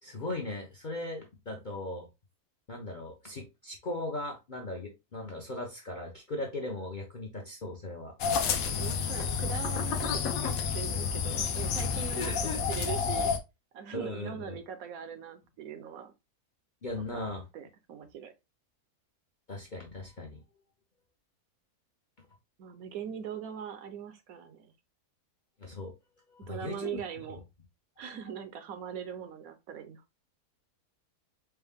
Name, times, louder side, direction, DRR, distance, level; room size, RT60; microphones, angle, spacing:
voice 1, 0.0-2.1 2.7-8.1 12.1-12.6 13.9-14.6 16.8-17.4 19.5-20.4 22.2-22.3 25.6-25.9 26.3-27.0, left 2 dB, 50° left, 0.6 m, -38 dB
sound 1, 8.2-13.4, left 6 dB, 70° left, 1.0 m, -30 dB
voice 2, 8.8-13.3 13.7-16.1 17.1-17.2 17.5-18.3 22.6-24.7 26.5-27.4 28.0-30.0, right 8 dB, 70° right, 1.0 m, -41 dB
4.5 x 2.0 x 3.5 m
omnidirectional pair, 1.6 m